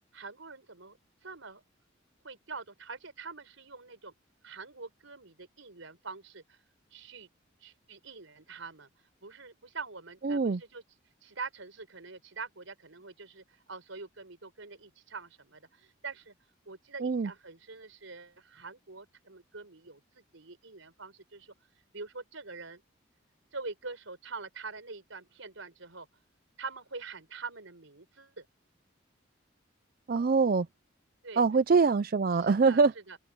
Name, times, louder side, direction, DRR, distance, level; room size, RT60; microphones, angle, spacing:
voice 1, 0.1-1.6 2.2-4.1 4.4-6.6 6.9-7.3 7.6-10.8 11.2-16.3 16.6-21.5 21.9-22.8 23.5-26.1 26.6-28.5 31.2-31.5 32.3-33.2, right 4 dB, 90° right, 4.8 m, -45 dB
voice 2, 10.2-10.6 17.0-17.3 30.1-30.7 31.4-32.9, right 4 dB, 45° right, 0.4 m, -24 dB
open air
head